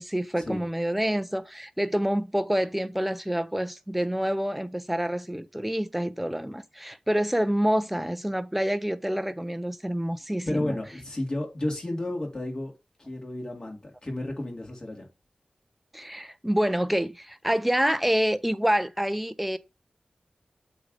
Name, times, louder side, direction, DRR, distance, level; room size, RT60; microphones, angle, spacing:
voice 1, 0.0-10.8 15.9-19.6, equal, 5° right, 0.4 m, -27 dB
voice 2, 10.5-12.7 13.0-15.1, left 1 dB, 35° left, 2.3 m, -32 dB
8.0 x 2.7 x 4.8 m
wide cardioid pair, 90°, 2 cm